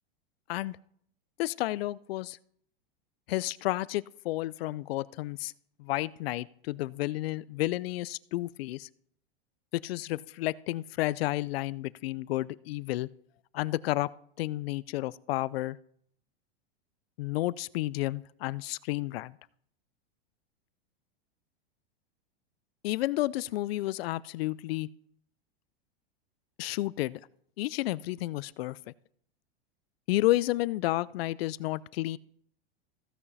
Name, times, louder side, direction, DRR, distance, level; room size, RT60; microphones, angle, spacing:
voice 1, 1.4-2.4 3.3-5.5 5.8-8.9 9.7-13.1 13.5-14.1 14.4-15.8 17.2-19.4 22.8-24.9 26.6-27.2 27.6-28.8 30.1-32.2, left 17 dB, 75° left, 20 dB, 0.5 m, -31 dB
15.5 x 5.6 x 4.1 m, 0.65 s
supercardioid pair, 140°, 30 cm